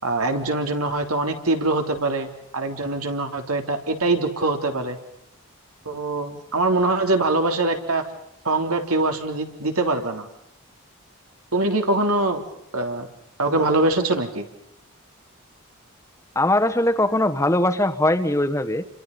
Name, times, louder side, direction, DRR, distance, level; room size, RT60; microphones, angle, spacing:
voice 1, 0.0-5.0 5.9-8.0 8.5-10.3 11.5-12.4 12.7-13.1 13.4-14.5, right 2 dB, 85° right, 5 dB, 3.6 m, -23 dB
voice 2, 16.3-18.8, left 1 dB, 15° left, 8 dB, 1.2 m, -20 dB
29.5 x 26.5 x 5.6 m, 0.78 s
head